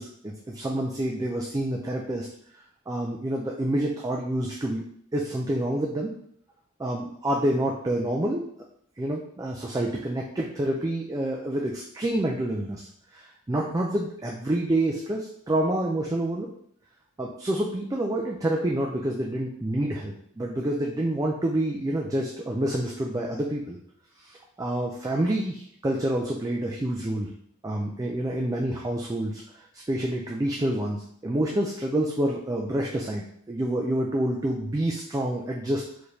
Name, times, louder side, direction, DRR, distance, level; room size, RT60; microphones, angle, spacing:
voice 1, 0.0-2.3 2.9-4.8 5.1-6.1 6.8-8.5 9.0-16.5 17.2-23.8 24.2-27.3 27.6-35.8, right 1 dB, 15° right, -1 dB, 0.3 m, -28 dB
4.7 x 3.2 x 2.7 m, 0.66 s
head